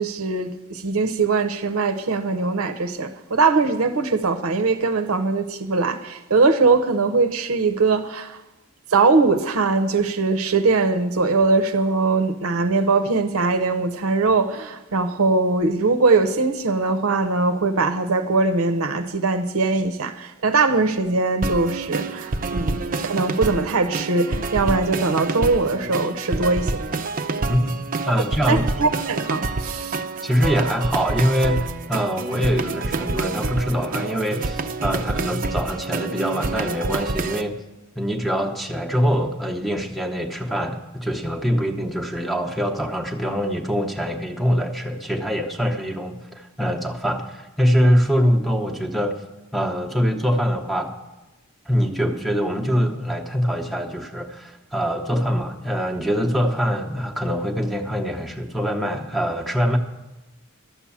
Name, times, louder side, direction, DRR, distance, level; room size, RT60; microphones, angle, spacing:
voice 1, 0.0-8.4 8.9-26.8 28.5-30.0, right 3 dB, 75° right, 0.7 m, -21 dB
sound 1, 21.4-37.4, right 3 dB, 40° right, 0.5 m, -27 dB
voice 2, 27.5-28.7 30.2-37.6 37.9-49.2 49.5-50.9 51.7-59.8, equal, ahead, 0.8 m, -23 dB
12.5 x 7.4 x 7.1 m
head